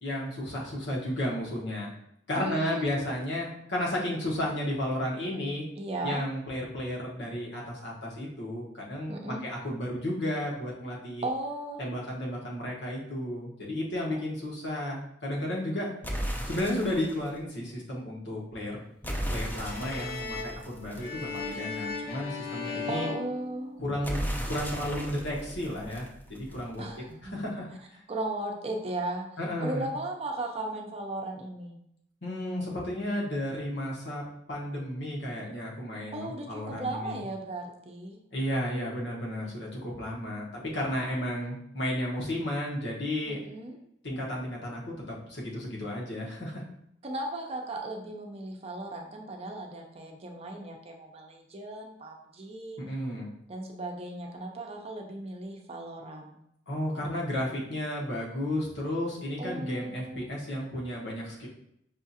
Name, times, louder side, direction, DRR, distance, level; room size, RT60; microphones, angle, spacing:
voice 1, 0.0-1.9 2.3-5.6 6.0-11.2 11.8-15.9 16.5-18.8 19.3-23.1 23.8-26.8 27.3-28.0 29.4-29.9 32.2-37.2 38.3-43.4 44.0-44.8 45.1-46.6 52.8-53.3 56.7-61.5, left 1 dB, 75° left, -3 dB, 1.2 m, -33 dB
voice 2, 2.3-3.0 5.8-6.2 9.1-9.4 11.2-11.8 22.9-23.8 26.8-27.3 28.1-31.8 36.1-38.2 43.3-43.8 47.0-52.8 53.5-56.4 59.4-60.2, right 2 dB, 35° right, 2 dB, 0.6 m, -36 dB
sound 1, 16.0-17.3 19.0-21.8 24.0-26.8, equal, 10° left, 0.5 m, -36 dB
sound 2, 19.5-24.2, left 5 dB, 60° left, 0.6 m, -37 dB
5.6 x 2.4 x 2.7 m, 0.75 s
head